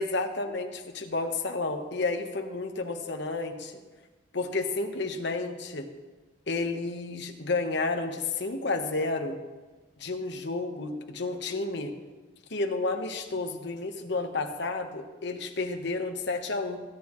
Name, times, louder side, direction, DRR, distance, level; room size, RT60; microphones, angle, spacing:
voice 1, 0.0-3.8 4.3-5.9 6.5-9.4 10.0-11.9 12.5-16.8, left 3 dB, 55° left, 5 dB, 1.2 m, -31 dB
21.5 x 9.5 x 3.1 m, 1.3 s
head